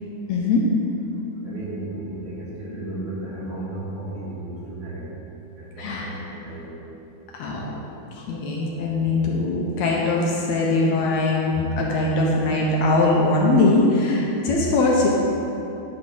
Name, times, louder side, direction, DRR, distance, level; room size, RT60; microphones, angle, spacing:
voice 1, 0.3-0.6 5.8-6.2 7.3-7.7 8.1-15.1, left 2 dB, 70° left, -2 dB, 1.9 m, -21 dB
voice 2, 1.4-5.1 5.6-6.7, right 1 dB, 45° right, -8 dB, 2.2 m, -34 dB
10.5 x 4.0 x 5.4 m, 2.9 s
omnidirectional pair, 3.5 m